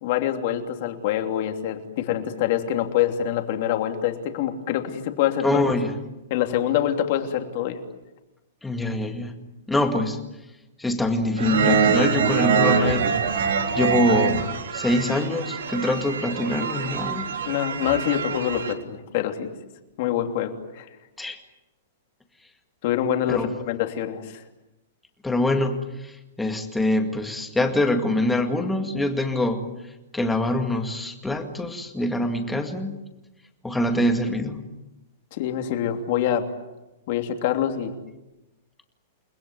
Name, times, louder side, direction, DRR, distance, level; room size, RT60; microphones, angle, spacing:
voice 1, 0.0-5.6 6.3-7.8 17.4-19.5 20.0-20.8 22.8-24.4 35.3-36.5 37.1-37.9, left 10 dB, 35° left, 6 dB, 2.9 m, -25 dB
voice 2, 5.4-6.0 8.6-9.4 9.7-10.2 10.8-13.5 13.7-14.5 14.7-17.3 21.2-21.4 23.3-23.5 25.2-29.7 30.1-33.0 33.6-34.6, left 1 dB, 5° left, 5 dB, 2.1 m, -24 dB
sound 1, 11.4-18.7, right 6 dB, 70° right, 3.7 m, -24 dB
30.0 x 21.0 x 9.6 m, 1.0 s
hypercardioid pair, 175°, 0 cm